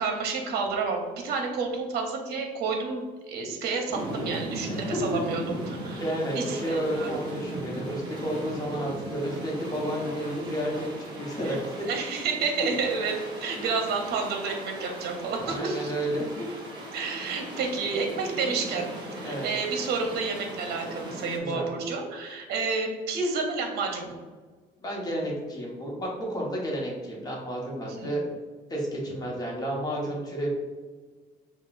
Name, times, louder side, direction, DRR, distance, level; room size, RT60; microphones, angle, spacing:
voice 1, 0.0-6.0 6.3-7.2 11.4-11.6 11.9-13.1 13.4-15.9 16.9-24.2 27.8-28.1, right 4 dB, 70° right, 3 dB, 0.7 m, -30 dB
sound 1, 3.9-21.4, right 1 dB, 25° right, 1.1 m, -38 dB
voice 2, 4.7-5.2 6.0-11.9 13.6-13.7 15.4-16.4 19.2-19.4 21.4-21.7 24.8-28.4 28.7-30.5, equal, 20° left, -3 dB, 1.1 m, -31 dB
5.7 x 2.4 x 2.5 m, 1.4 s
cardioid pair, 110°, 17 cm